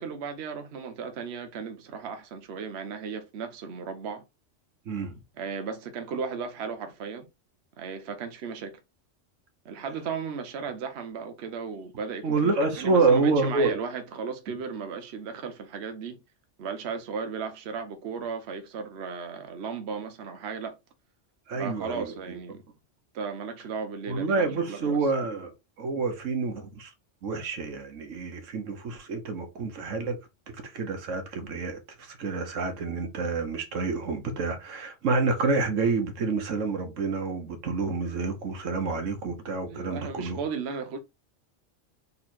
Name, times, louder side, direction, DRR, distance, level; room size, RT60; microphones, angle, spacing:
voice 1, 0.0-4.2 5.4-7.3 7.8-8.8 9.6-12.5 12.8-16.2 16.6-20.8 21.5-22.6 23.1-25.0 39.7-41.0, right 5 dB, 65° right, 0.9 m, -35 dB
voice 2, 12.2-13.7 21.5-22.4 24.1-25.5 25.8-26.9 27.2-30.2 30.7-40.4, right 3 dB, 85° right, 1.3 m, -28 dB
4.1 x 3.0 x 4.3 m
omnidirectional pair, 1.3 m